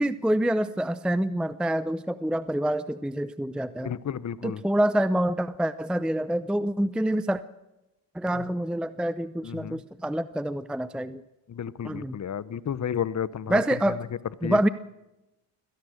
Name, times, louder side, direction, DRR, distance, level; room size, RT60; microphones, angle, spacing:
voice 1, 0.0-3.9 4.4-7.4 8.1-11.2 11.8-12.2 13.5-14.0 14.4-14.7, right 1 dB, ahead, 14 dB, 0.6 m, -26 dB
voice 2, 3.8-4.6 8.3-8.5 9.4-9.8 11.5-13.9 14.4-14.6, left 8 dB, 35° left, 18 dB, 0.9 m, -32 dB
24.0 x 17.0 x 6.6 m, 0.96 s
cardioid pair, 85°, 47 cm